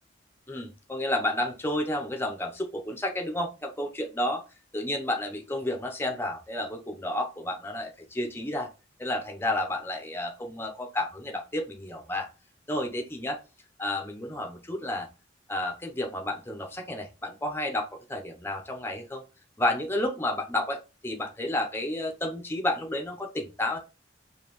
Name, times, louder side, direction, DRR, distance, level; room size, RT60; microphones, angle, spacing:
voice 1, 0.5-4.4 4.7-8.7 9.0-12.3 12.7-13.4 13.8-15.1 15.5-19.2 19.6-23.8, left 1 dB, 10° left, 3 dB, 0.6 m, -31 dB
5.1 x 2.7 x 3.0 m, 0.30 s
head